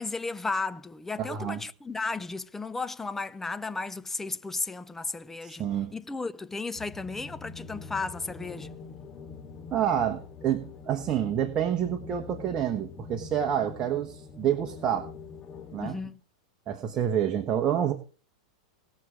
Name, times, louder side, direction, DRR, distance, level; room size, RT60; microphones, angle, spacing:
voice 1, 0.0-5.7 5.9-8.7 15.8-16.2, left 3 dB, 10° left, 0.6 m, -34 dB
voice 2, 1.2-1.6 5.4-5.9 9.7-15.1 15.7-16.0 16.7-17.9, right 9 dB, 30° right, 1.2 m, -28 dB
sound 1, 6.7-16.0, left 5 dB, 30° left, 3.3 m, -44 dB
19.0 x 6.3 x 4.7 m
hypercardioid pair, 115°, 4 cm